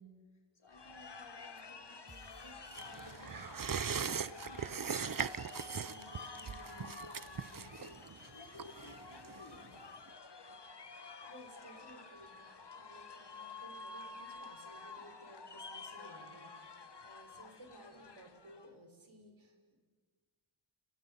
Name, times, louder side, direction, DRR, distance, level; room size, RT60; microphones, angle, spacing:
voice 1, 0.0-9.8, left 2 dB, 75° left, 1 dB, 5.3 m, -57 dB
sound 1, 0.7-18.7, left 4 dB, 55° left, 1.7 m, -51 dB
sound 2, 2.1-3.3, right 1 dB, 25° right, 6.5 m, -59 dB
sound 3, 2.7-9.8 10.1-10.2, right 6 dB, 45° right, 0.7 m, -40 dB
voice 2, 11.2-19.8, right 1 dB, 70° right, 4 dB, 5.1 m, -57 dB
30.0 x 29.0 x 5.5 m, 1.5 s
wide cardioid pair, 85°, 48 cm